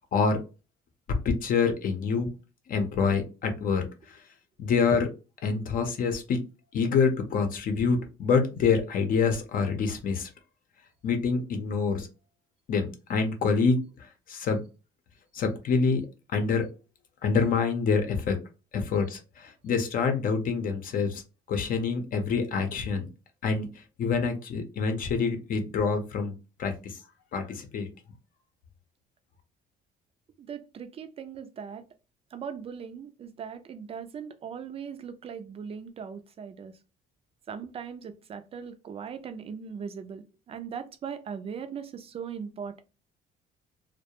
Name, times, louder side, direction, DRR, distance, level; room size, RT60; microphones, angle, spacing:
voice 1, 0.1-0.4 1.1-2.3 2.7-3.8 4.6-5.1 5.4-6.4 6.7-10.3 11.0-12.1 12.7-13.8 14.3-14.6 15.3-16.0 16.3-16.7 17.2-18.4 18.7-21.2 21.5-23.1 23.4-23.7 24.0-26.3 26.6-26.9 27.3-27.9, left 5 dB, 55° left, 5 dB, 0.7 m, -26 dB
voice 2, 30.4-31.8 32.3-36.7 37.5-42.8, right 7 dB, 35° right, 9 dB, 0.4 m, -39 dB
2.3 x 2.1 x 2.8 m, 0.31 s
cardioid pair, 110°, 17 cm